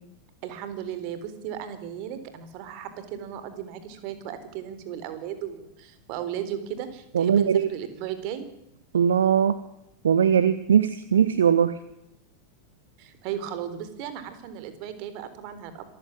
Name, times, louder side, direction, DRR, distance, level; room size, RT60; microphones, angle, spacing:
voice 1, 0.4-8.5 13.0-15.8, right 9 dB, 45° right, 11 dB, 4.1 m, -36 dB
voice 2, 7.1-7.7 8.9-9.6 10.0-11.8, right 8 dB, 65° right, 14 dB, 1.1 m, -20 dB
26.0 x 15.0 x 9.8 m, 0.81 s
figure-of-eight pair, 90°, 0 cm